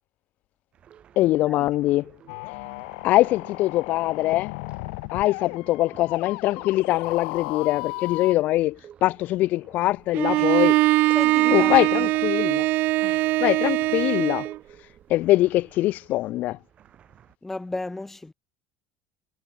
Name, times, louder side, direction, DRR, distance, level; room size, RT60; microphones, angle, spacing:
sound 1, 0.7-17.4, right 9 dB, 30° right, 5.4 m, -53 dB
voice 1, 1.2-2.1 3.0-4.5 5.1-10.8 11.5-12.7 13.0-14.5 15.1-16.6, left 16 dB, 45° left, 0.6 m, -23 dB
sound 2, 2.3-8.3, left 33 dB, 80° left, 2.3 m, -35 dB
Bowed string instrument, 10.1-14.6, right 19 dB, 50° right, 0.6 m, -21 dB
voice 2, 11.1-12.1 13.1-13.2 17.4-18.3, left 2 dB, 5° left, 2.8 m, -34 dB
cardioid pair, 175°, 4 cm